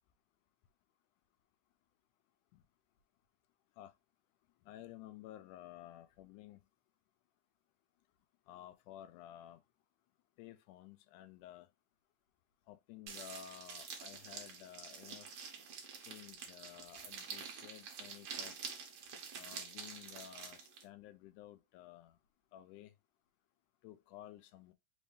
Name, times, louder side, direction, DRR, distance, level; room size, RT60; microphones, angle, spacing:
voice 1, 4.7-6.6 8.5-9.6 10.4-11.7 12.7-15.3 16.0-18.6 19.4-22.2 22.5-22.9 23.8-24.7, left 12 dB, 85° left, 2.0 m, -54 dB
sound 1, 13.1-20.8, right 6 dB, 65° right, 1.3 m, -48 dB
5.1 x 2.6 x 3.2 m
omnidirectional pair, 3.5 m